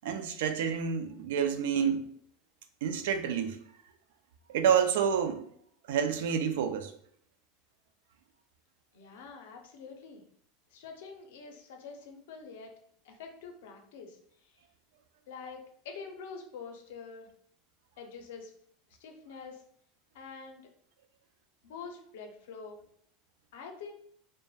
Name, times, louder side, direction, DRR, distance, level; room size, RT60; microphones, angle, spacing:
voice 1, 0.0-2.0 2.8-3.6 4.5-5.4 5.9-6.9, right 7 dB, 80° right, 7 dB, 0.3 m, -28 dB
voice 2, 8.9-10.2 10.7-12.7 13.0-14.6 15.3-17.3 18.0-18.5 19.0-19.6 20.1-20.7 21.6-22.8 23.5-23.9, left 5 dB, 80° left, 3 dB, 0.5 m, -46 dB
2.2 x 2.0 x 3.2 m, 0.65 s
supercardioid pair, 160°, 0 cm